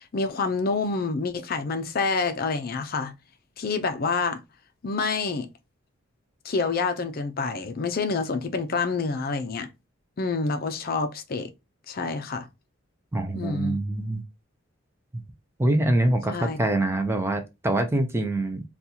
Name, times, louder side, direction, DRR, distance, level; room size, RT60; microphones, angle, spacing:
voice 1, 0.0-3.1 3.6-4.4 4.8-5.5 6.4-9.7 10.2-11.5 11.9-12.5 13.3-13.8 16.3-16.6, left 4 dB, 50° left, 0.5 m, -27 dB
voice 2, 13.1-14.2 15.6-18.6, right 1 dB, 10° right, 0.4 m, -24 dB
4.1 x 2.3 x 2.7 m
head